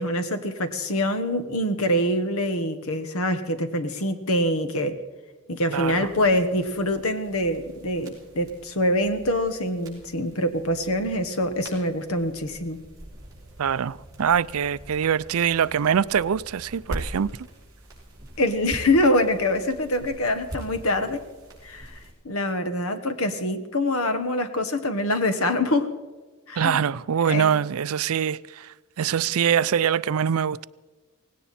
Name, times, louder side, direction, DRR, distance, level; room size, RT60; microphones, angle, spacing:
voice 1, 0.0-5.0 5.5-12.8 18.4-21.2 21.6-22.0 22.2-25.9 26.5-26.9 27.2-27.6, left 1 dB, 70° left, 1.4 m, -25 dB
sound 1, 5.7-22.1, right 1 dB, 15° right, 5.0 m, -43 dB
voice 2, 5.7-6.1 13.6-17.3 26.6-30.7, right 8 dB, 75° right, 0.4 m, -24 dB
18.5 x 17.5 x 4.3 m
head